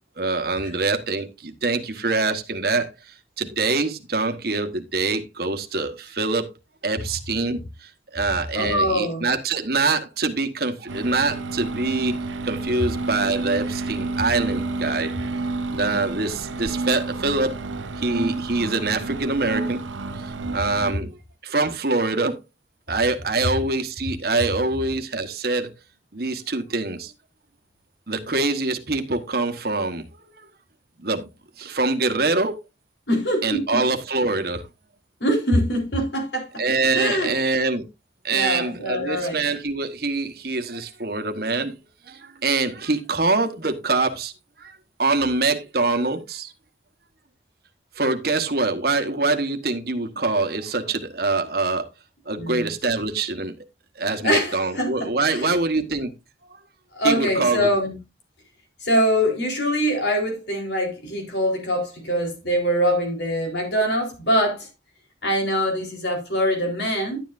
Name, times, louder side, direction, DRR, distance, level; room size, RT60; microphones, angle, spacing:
voice 1, 0.2-2.9 3.4-6.5 6.8-12.1 12.4-15.1 15.7-17.5 18.0-19.8 20.5-21.1 21.4-22.4 22.9-25.7 26.1-27.1 28.1-30.1 31.0-31.3 31.6-32.6 33.4-34.6 36.6-37.9 38.2-41.7 42.1-44.3 44.6-46.5 48.0-51.9 52.3-53.5 54.0-56.1 57.0-57.7, right 3 dB, 55° right, 1.3 m, -24 dB
voice 2, 8.5-9.2 33.1-33.8 35.2-36.6 36.9-37.4 38.3-39.4 52.3-52.7 54.2-55.5 56.9-58.0 58.8-64.7 65.2-67.2, equal, 65° left, 4.2 m, -23 dB
sound 1, 10.9-20.9, right 3 dB, 90° right, 1.0 m, -30 dB
11.5 x 9.6 x 2.6 m
head